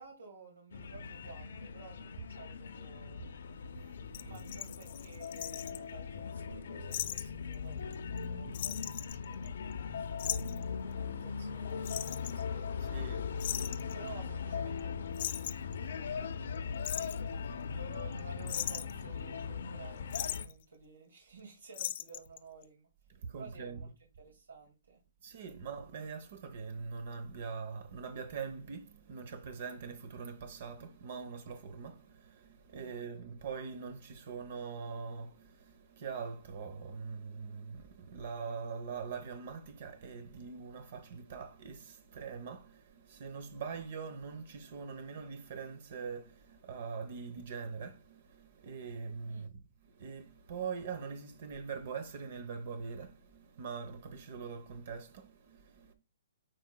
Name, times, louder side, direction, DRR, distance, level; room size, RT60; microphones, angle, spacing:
voice 1, 0.0-3.2 4.2-13.0 13.9-16.3 17.7-22.9 23.4-23.9 24.2-25.0 32.8-32.9 49.3-49.5, right 4 dB, 85° right, 2.2 m, -53 dB
sound 1, 0.7-20.4, left 6 dB, 65° left, 0.8 m, -39 dB
voice 2, 3.6-4.3 9.3-9.4 12.8-13.9 16.7-17.7 23.1-23.8 25.2-55.9, right 5 dB, 50° right, 0.9 m, -43 dB
sound 2, 4.1-5.8 6.9-7.2 7.5-7.6 7.9-8.2 8.5-9.7 10.2-10.6 11.9-12.4 13.4-13.9 14.8-14.9 15.2-15.7 16.6-17.2 17.9-18.2 18.5-19.0 20.1-20.5 21.7-22.4 22.6-22.7, left 12 dB, 45° left, 0.4 m, -38 dB
9.0 x 4.7 x 2.3 m
hypercardioid pair, 155°, 0 cm